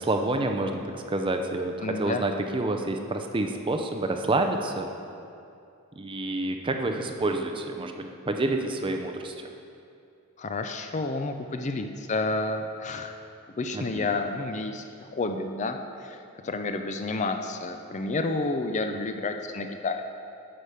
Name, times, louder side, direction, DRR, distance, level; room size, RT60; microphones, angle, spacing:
voice 1, 0.0-4.9 6.0-9.5 13.7-14.1, right 2 dB, 25° right, 4 dB, 0.5 m, -28 dB
voice 2, 1.8-2.2 10.4-13.1 13.6-14.8 15.1-16.2 16.4-20.0, left 3 dB, 30° left, 6 dB, 0.4 m, -30 dB
10.0 x 4.9 x 6.6 m, 2.5 s
head